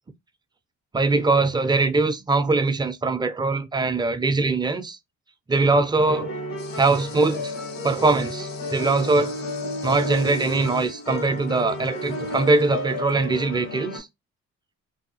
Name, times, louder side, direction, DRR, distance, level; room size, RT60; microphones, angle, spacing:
voice 1, 0.9-5.0 5.5-6.3 6.7-7.5 7.8-9.4 9.8-14.1, right 3 dB, 15° right, 0.3 m, -22 dB
sound 1, 6.0-14.0, left 2 dB, 85° left, 1.3 m, -32 dB
sound 2, 6.6-13.3, left 6 dB, 65° left, 0.8 m, -46 dB
2.6 x 2.3 x 2.7 m
cardioid pair, 90°, 30 cm